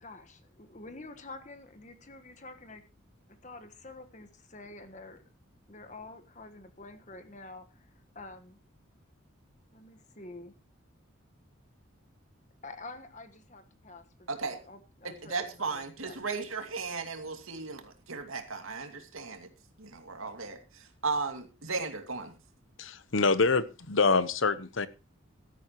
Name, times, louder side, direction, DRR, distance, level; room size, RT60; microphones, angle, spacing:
voice 1, 0.0-2.8 3.4-5.2 5.7-7.6 8.1-8.6 9.7-10.5 12.6-14.0 14.7-15.4 16.0-16.1, left 2 dB, 35° left, 8 dB, 1.4 m, -47 dB
voice 2, 14.3-14.6 15.0-19.5 19.8-22.3, right 4 dB, 85° right, 5 dB, 2.6 m, -36 dB
voice 3, 22.8-24.9, left 4 dB, 70° left, 15 dB, 1.0 m, -26 dB
16.5 x 13.0 x 3.0 m, 0.29 s
head